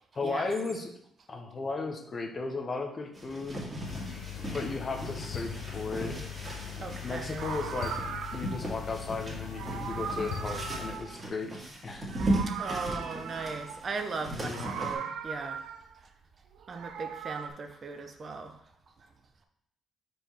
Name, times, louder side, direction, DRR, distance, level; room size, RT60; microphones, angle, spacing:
voice 1, 0.1-0.9 1.3-3.6 4.5-6.2 7.0-7.9 8.3-11.5 11.8-12.1 14.4-14.9, left 3 dB, 40° left, 3 dB, 1.0 m, -35 dB
sound 1, 3.1-14.9, right 1 dB, 20° right, 2.1 m, -37 dB
sound 2, 3.8-11.0, left 8 dB, 80° left, 0.8 m, -40 dB
Meow, 6.5-6.7 7.2-8.7 9.4-11.7 12.0-13.9 14.4-16.0 16.5-17.5, right 7 dB, 80° right, 0.5 m, -39 dB
voice 2, 6.7-7.5 12.5-15.7 15.9-16.1 16.7-18.6 19.0-19.1, right 4 dB, 45° right, 6 dB, 0.8 m, -38 dB
5.2 x 4.6 x 4.5 m, 0.73 s
cardioid pair, 90°, 0 cm